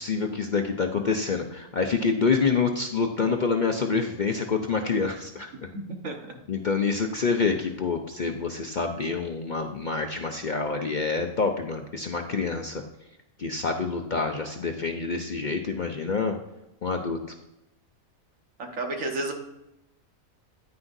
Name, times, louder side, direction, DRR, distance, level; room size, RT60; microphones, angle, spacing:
voice 1, 0.0-5.7 6.5-12.8 13.4-16.4 16.8-17.2, left 4 dB, 50° left, 4 dB, 0.6 m, -27 dB
voice 2, 5.7-6.3 18.6-19.3, right 2 dB, 70° right, 3 dB, 1.6 m, -32 dB
9.8 x 9.7 x 2.6 m, 0.91 s
omnidirectional pair, 1.4 m